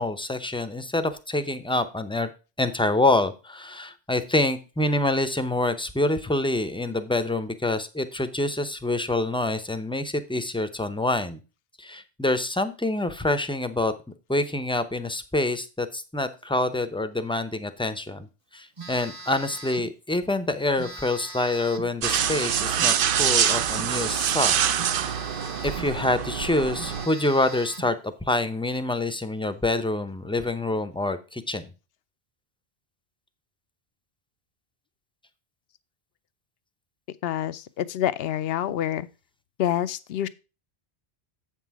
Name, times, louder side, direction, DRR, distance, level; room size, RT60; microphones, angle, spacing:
voice 1, 0.0-2.3 2.6-11.4 11.8-13.9 14.3-18.3 18.5-24.7 25.6-31.7, left 2 dB, 5° left, 0.5 m, -26 dB
Telephone, 18.8-19.9 20.8-22.0 22.8-24.0 24.8-26.0 26.4-26.5 26.8-28.0, right 3 dB, 30° right, 1.0 m, -41 dB
sound 1, 22.0-27.1, right 9 dB, 60° right, 0.7 m, -25 dB
voice 2, 37.2-39.1 39.6-40.3, left 11 dB, 70° left, 0.8 m, -27 dB
8.0 x 5.9 x 4.7 m
omnidirectional pair, 1.1 m